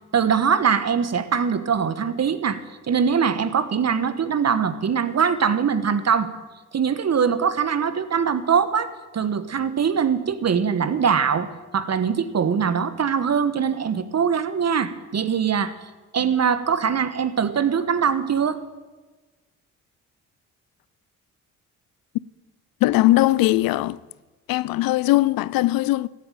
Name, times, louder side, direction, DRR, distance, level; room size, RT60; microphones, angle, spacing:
voice 1, 0.1-6.3 6.7-11.5 11.7-15.7 16.1-18.6, right 7 dB, 45° right, 1.3 m, -22 dB
voice 2, 22.8-24.0 24.5-26.1, left 17 dB, 65° left, 0.5 m, -19 dB
14.5 x 8.2 x 9.1 m
hypercardioid pair, 45°, 38 cm